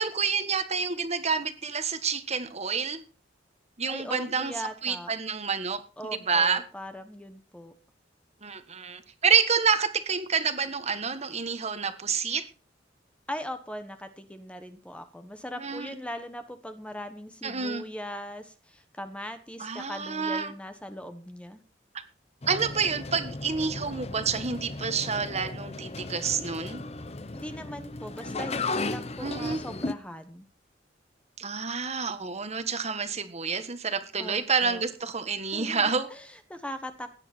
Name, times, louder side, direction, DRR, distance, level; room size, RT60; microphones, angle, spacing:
voice 1, 0.0-3.0 3.8-5.8 6.1-6.6 8.4-12.4 15.5-15.9 17.4-17.9 19.6-20.5 21.9-22.0 22.5-26.8 29.2-29.6 31.4-36.1, right 5 dB, 35° right, 9 dB, 1.5 m, -28 dB
voice 2, 3.9-5.1 6.0-7.7 13.3-21.6 27.3-30.5 34.2-34.8 35.5-37.1, equal, 5° left, 8 dB, 1.1 m, -40 dB
sound 1, 22.4-29.9, left 3 dB, 35° left, 0.9 m, -35 dB
16.5 x 9.9 x 4.5 m, 0.36 s
head